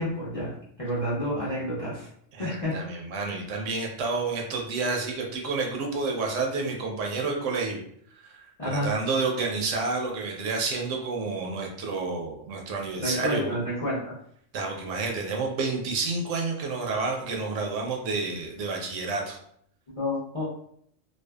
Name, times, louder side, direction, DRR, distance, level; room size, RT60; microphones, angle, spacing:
voice 1, 0.0-2.1 2.4-2.7 8.6-8.9 13.0-14.1 19.9-20.4, left 1 dB, 35° left, -8 dB, 0.6 m, -29 dB
voice 2, 2.3-7.8 8.2-13.6 14.5-19.4, right 4 dB, 75° right, 1 dB, 0.9 m, -29 dB
2.5 x 2.3 x 2.2 m, 0.66 s
omnidirectional pair, 1.3 m